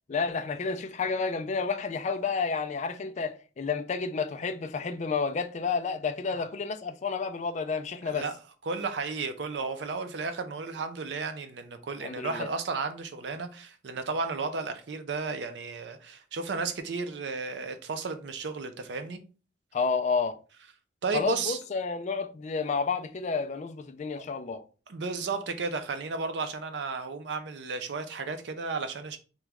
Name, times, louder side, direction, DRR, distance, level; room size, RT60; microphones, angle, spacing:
voice 1, 0.1-8.3 12.0-12.5 19.7-20.4 21.1-24.6, left 5 dB, 40° left, 0.4 m, -30 dB
voice 2, 8.6-19.2 21.0-21.6 24.2-24.3 24.9-29.2, right 4 dB, 75° right, 0.5 m, -33 dB
3.0 x 2.2 x 3.4 m
head